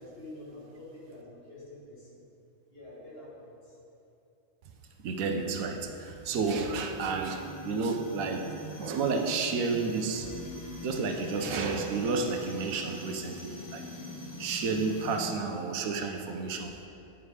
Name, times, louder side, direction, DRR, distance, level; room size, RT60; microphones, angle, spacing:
voice 1, 0.0-2.2 2.7-3.8, left 1 dB, 50° left, -6 dB, 1.7 m, -47 dB
voice 2, 5.0-8.5 8.8-10.3 10.8-13.8 14.4-16.8, right 4 dB, 85° right, 4 dB, 1.1 m, -31 dB
sound 1, 5.7-15.3, left 1 dB, 25° left, 0.4 m, -44 dB
8.5 x 3.6 x 4.8 m, 2.7 s
omnidirectional pair, 1.4 m